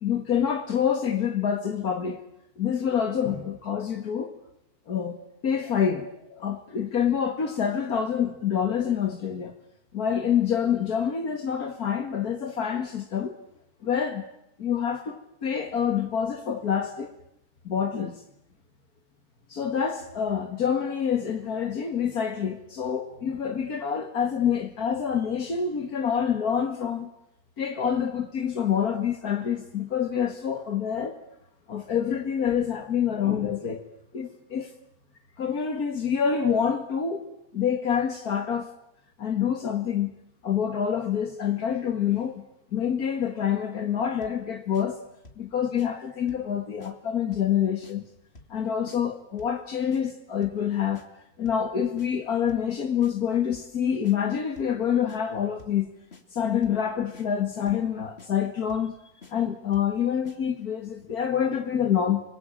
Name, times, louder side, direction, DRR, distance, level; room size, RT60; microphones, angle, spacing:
voice 1, 0.0-2.2 2.6-4.3 4.9-5.2 5.4-9.5 9.9-13.3 13.8-14.2 14.6-17.1 17.7-18.2 19.5-27.1 27.6-31.2 31.7-33.8 34.1-34.7 35.4-37.3 37.5-38.7 39.2-40.1 40.4-42.4 42.7-45.0 45.4-48.0 48.5-51.0 51.4-55.9 56.3-58.9 59.3-62.2, left 8 dB, 80° left, 5 dB, 2.3 m, -27 dB
sound 1, 44.2-44.4 44.7-44.9 45.2-45.5 45.8-45.9 46.3-46.5 46.8-46.9 47.3-47.5 47.8-48.0 48.3-48.6 48.9-49.0 49.4-49.6 49.9-50.0 50.4-50.6 50.9-51.1 51.4-51.7 52.0-52.1 52.5-52.7 53.0-53.1 53.5-53.7 54.0-54.2 54.6-54.8 55.1-55.2 55.6-55.8 56.1-56.2 56.6-56.8 57.1-57.3 57.7-57.9 58.2-58.3 58.7-58.9 59.2-59.3 59.7-59.9 60.2-60.4, left 3 dB, 40° left, 3.0 m, -49 dB
30.0 x 22.0 x 8.8 m, 0.80 s
omnidirectional pair, 1.6 m